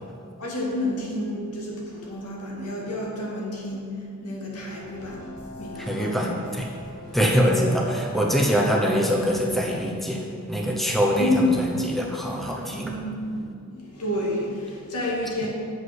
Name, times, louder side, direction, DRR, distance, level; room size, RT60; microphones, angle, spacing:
voice 1, 0.4-6.4 11.1-11.6 12.7-15.5, left 1 dB, 90° left, -3 dB, 2.0 m, -29 dB
sound 1, 4.8-9.8, right 2 dB, 70° left, 2.1 m, -41 dB
voice 2, 5.8-6.7 7.1-12.9, equal, ahead, -1 dB, 0.7 m, -24 dB
7.7 x 5.5 x 6.2 m, 2.3 s
head